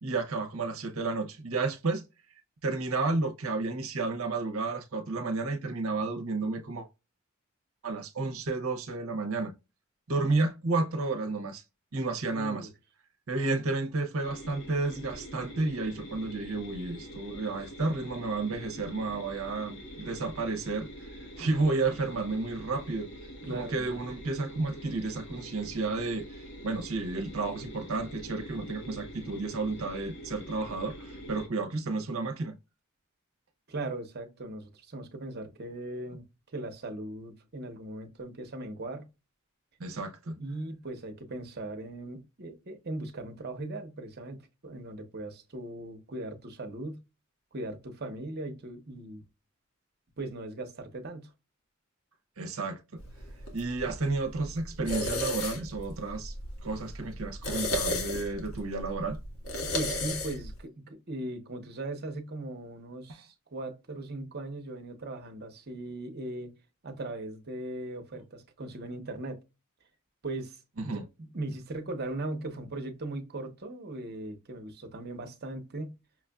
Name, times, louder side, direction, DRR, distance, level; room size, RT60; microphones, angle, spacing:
voice 1, 0.0-2.0 2.6-6.9 7.8-9.5 10.1-11.6 11.9-12.7 13.3-23.1 23.5-26.3 26.6-32.6 39.8-40.4 52.4-53.0 53.5-56.3 56.6-59.2 70.8-71.0, right 3 dB, 75° right, 0.8 m, -31 dB
voice 2, 12.3-12.7 23.4-24.0 33.7-39.1 40.3-47.0 47.5-49.2 50.2-51.3 59.6-66.5 66.8-69.4 70.2-76.0, right 2 dB, 50° right, 1.0 m, -39 dB
sound 1, 14.2-31.5, equal, 60° left, 1.2 m, -45 dB
sound 2, 53.0-60.6, left 1 dB, 85° left, 1.4 m, -35 dB
6.0 x 2.4 x 2.3 m
head